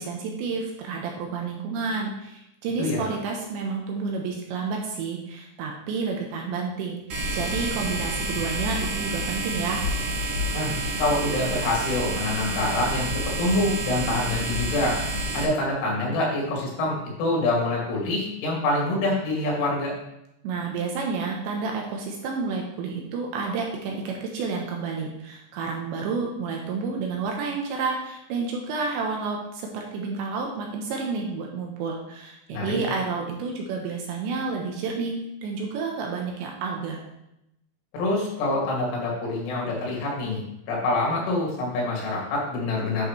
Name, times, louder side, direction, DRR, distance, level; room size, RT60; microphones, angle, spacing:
voice 1, 0.0-9.8 20.4-35.1 35.4-37.0, right 4 dB, 75° right, 0 dB, 3.0 m, -30 dB
sound 1, 7.1-15.4, right 1 dB, 60° right, 2.5 m, -29 dB
voice 2, 10.5-15.0 15.3-19.9 32.5-32.8 37.9-43.1, left 2 dB, 80° left, -3 dB, 4.9 m, -26 dB
10.5 x 6.5 x 3.2 m, 0.85 s
omnidirectional pair, 5.5 m